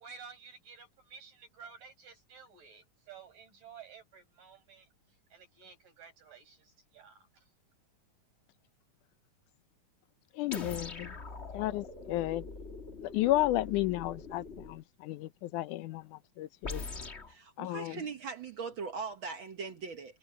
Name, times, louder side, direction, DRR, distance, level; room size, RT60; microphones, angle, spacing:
voice 1, 0.0-7.5, right 6 dB, 80° right, 8.7 m, -53 dB
voice 2, 10.4-11.1 11.5-12.4 13.0-16.0 16.4-16.8 17.6-18.0, left 16 dB, 75° left, 2.2 m, -32 dB
sound 1, 10.5-14.8 16.6-17.3, left 3 dB, 30° left, 1.3 m, -43 dB
voice 3, 17.3-20.2, right 5 dB, 60° right, 1.3 m, -40 dB
omnidirectional pair, 3.7 m